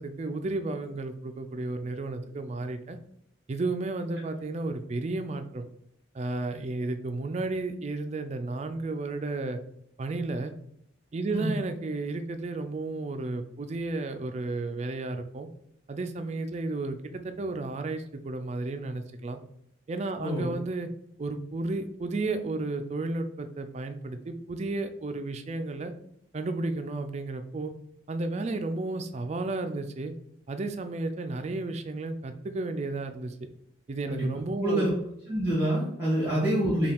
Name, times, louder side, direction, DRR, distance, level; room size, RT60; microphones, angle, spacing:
voice 1, 0.0-3.0 3.5-5.7 6.1-9.6 10.0-10.5 11.1-15.5 15.9-19.4 19.9-20.9 21.2-25.9 26.3-27.7 28.1-30.1 30.5-33.3 33.9-35.0 36.2-36.4, right 2 dB, 35° right, 8 dB, 0.3 m, -33 dB
voice 2, 20.2-20.5 34.1-34.3 34.6-34.9 35.3-36.9, right 1 dB, 15° right, -9 dB, 1.6 m, -26 dB
5.4 x 2.3 x 3.4 m, 0.73 s
head